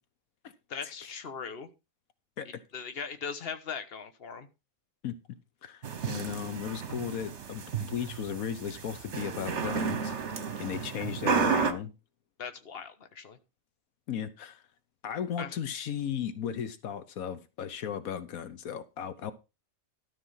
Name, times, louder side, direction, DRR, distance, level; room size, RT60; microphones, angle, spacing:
voice 1, 0.7-1.7 2.7-4.5 12.4-13.4 15.4-15.5, left 6 dB, 45° left, 1.4 m, -39 dB
voice 2, 5.6-11.9 14.1-14.6 15.0-19.3, left 8 dB, 85° left, 1.4 m, -36 dB
sound 1, 5.8-11.7, right 6 dB, 55° right, 1.4 m, -32 dB
12.5 x 5.6 x 5.6 m
omnidirectional pair, 1.4 m